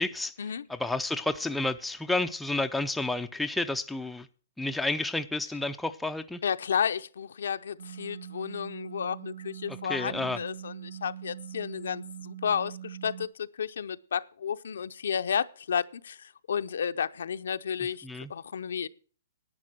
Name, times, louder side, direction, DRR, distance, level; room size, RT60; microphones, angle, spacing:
voice 1, 0.0-0.3 0.7-4.3 4.6-6.4 9.7-10.4 18.0-18.3, left 2 dB, 5° left, 0.5 m, -30 dB
voice 2, 6.4-18.9, left 7 dB, 75° left, 0.6 m, -32 dB
sound 1, 7.8-13.3, right 10 dB, 75° right, 0.5 m, -43 dB
11.0 x 9.4 x 6.1 m
hypercardioid pair, 155°, 0 cm